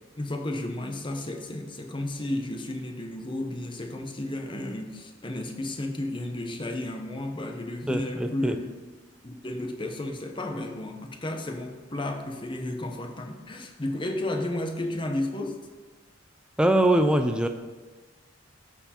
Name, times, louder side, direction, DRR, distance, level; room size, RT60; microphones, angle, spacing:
voice 1, 0.2-8.7 9.2-15.6, left 1 dB, 25° left, 5 dB, 0.8 m, -33 dB
voice 2, 7.9-8.6 16.6-17.5, right 1 dB, 5° right, 6 dB, 0.4 m, -22 dB
13.0 x 4.6 x 4.3 m, 1.3 s
head